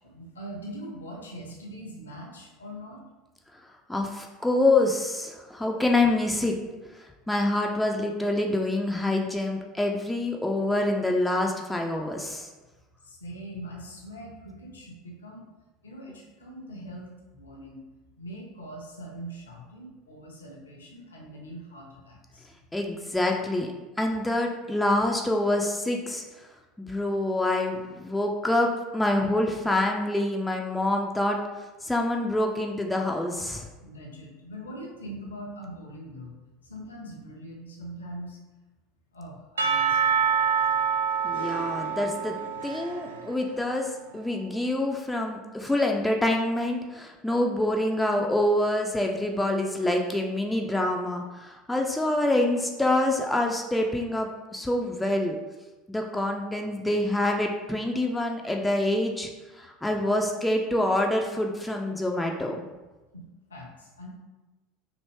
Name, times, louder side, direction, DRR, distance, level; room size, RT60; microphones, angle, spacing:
voice 1, 0.1-3.0 13.0-15.4 15.8-17.8 18.2-22.5 33.8-36.3 36.7-38.4 39.1-40.1 63.1-63.2 63.5-64.1, right 1 dB, 75° left, -1 dB, 0.7 m, -42 dB
voice 2, 3.9-6.6 7.3-12.5 22.7-23.7 24.0-26.2 26.8-31.4 31.8-33.6 41.2-42.3 42.6-55.4 55.9-62.6, left 1 dB, 5° left, 1 dB, 0.3 m, -26 dB
Percussion / Church bell, 39.6-43.7, right 7 dB, 75° right, 0.3 m, -26 dB
3.0 x 2.6 x 3.2 m, 1.2 s
figure-of-eight pair, 75°, 0 cm